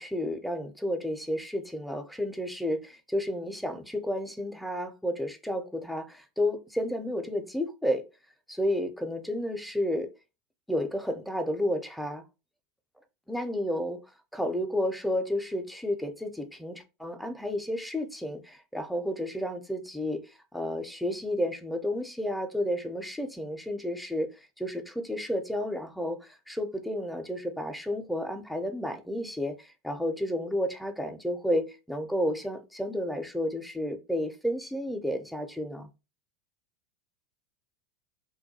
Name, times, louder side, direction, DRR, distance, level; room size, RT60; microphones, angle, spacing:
voice 1, 0.0-8.0 8.5-10.1 10.7-12.2 13.3-14.0 14.3-24.3 24.6-35.9, left 1 dB, ahead, 0.4 m, -31 dB
2.2 x 2.2 x 2.7 m
hypercardioid pair, 95°, 0 cm